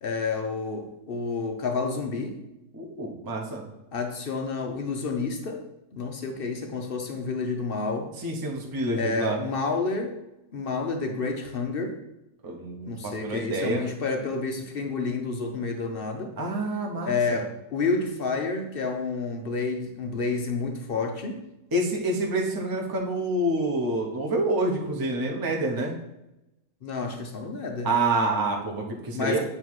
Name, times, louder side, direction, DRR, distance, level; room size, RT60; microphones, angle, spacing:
voice 1, 0.0-2.4 3.9-5.6 5.9-8.1 8.9-10.2 10.5-12.0 12.8-16.3 17.0-21.4 26.8-27.9 29.1-29.4, left 4 dB, 55° left, 4 dB, 0.6 m, -29 dB
voice 2, 2.7-3.6 8.2-9.4 12.4-13.9 16.4-17.4 21.7-25.9 27.8-29.4, right 2 dB, 15° right, -1 dB, 0.8 m, -27 dB
9.2 x 3.2 x 4.7 m, 0.91 s
omnidirectional pair, 1.8 m